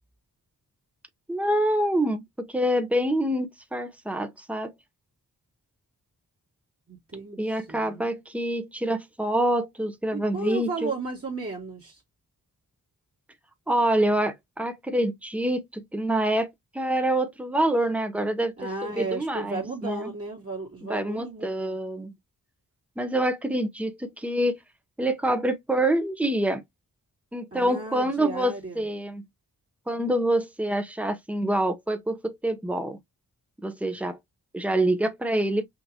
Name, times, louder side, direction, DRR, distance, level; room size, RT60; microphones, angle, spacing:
voice 1, 1.3-4.7 7.4-10.9 13.7-18.5 18.8-20.1 20.9-22.1 23.0-24.6 25.0-26.6 27.3-29.2 29.9-33.0 33.6-34.2 34.5-35.7, right 1 dB, 5° right, 0.8 m, -26 dB
voice 2, 6.9-8.0 10.1-12.0 18.6-21.7 27.5-28.8, right 3 dB, 40° right, 2.2 m, -34 dB
5.7 x 2.9 x 2.9 m
wide cardioid pair, 80°, 36 cm